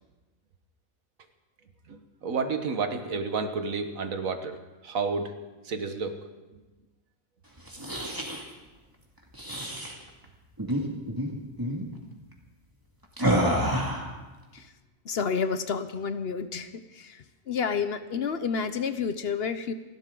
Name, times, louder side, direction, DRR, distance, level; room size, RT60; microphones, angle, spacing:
voice 1, 1.9-4.6 4.8-5.3 5.6-6.1, right 4 dB, 90° right, 7 dB, 1.7 m, -30 dB
sound 1, 7.6-8.4 9.3-9.9 10.6-10.8 11.1-11.3 11.6-11.9 13.2-14.1, equal, 15° right, 2.2 m, -28 dB
voice 2, 15.1-16.7 17.0-17.2 17.5-19.7, left 6 dB, 55° left, 11 dB, 0.9 m, -29 dB
29.0 x 12.5 x 3.8 m, 1.2 s
omnidirectional pair, 1.4 m